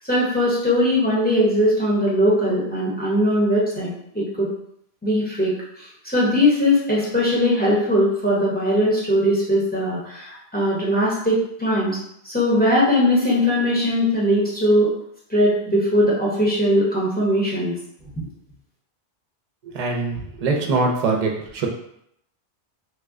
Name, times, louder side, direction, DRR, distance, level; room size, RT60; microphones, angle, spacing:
voice 1, 0.0-3.9 4.1-4.5 5.0-5.5 5.8-12.0 12.2-14.9 15.3-17.7 18.2-18.3, equal, 10° left, -6 dB, 0.7 m, -20 dB
voice 2, 19.6-21.7, right 3 dB, 45° right, 0 dB, 0.5 m, -23 dB
2.9 x 2.1 x 3.5 m, 0.73 s
omnidirectional pair, 1.1 m